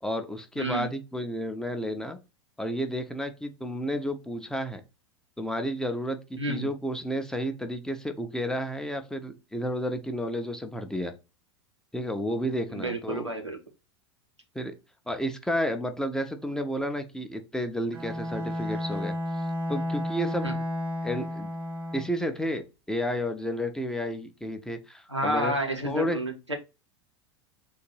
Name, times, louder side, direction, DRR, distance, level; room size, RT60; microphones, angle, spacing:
voice 1, 0.0-2.2 2.6-4.8 5.4-11.1 11.9-13.3 14.5-14.8 15.1-19.2 19.7-20.5 21.0-21.5 21.9-25.5 25.8-26.2, equal, 5° left, 6 dB, 0.6 m, -31 dB
voice 2, 0.6-0.9 6.4-6.7 12.7-13.6 20.4-20.5 25.1-26.5, right 1 dB, 90° right, 2 dB, 1.1 m, -30 dB
Bowed string instrument, 17.9-22.2, left 1 dB, 60° right, 1.0 m, -32 dB
3.9 x 2.5 x 4.6 m, 0.27 s
figure-of-eight pair, 85°, 14 cm